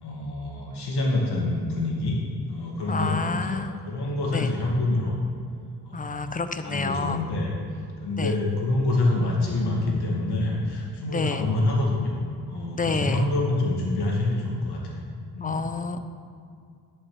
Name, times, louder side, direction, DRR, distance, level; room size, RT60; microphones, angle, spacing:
voice 1, 0.0-2.2 2.5-3.6 3.9-5.2 5.9-6.3 6.6-7.5 8.0-12.1 12.5-14.8 15.3-15.6, left 2 dB, 70° left, -2 dB, 2.2 m, -26 dB
voice 2, 2.9-3.7 4.3-4.5 5.9-7.2 8.2-8.4 11.1-11.4 12.7-13.3 15.4-16.0, left 4 dB, 20° left, 10 dB, 0.6 m, -28 dB
10.5 x 5.5 x 4.9 m, 2.3 s
supercardioid pair, 55°, 41 cm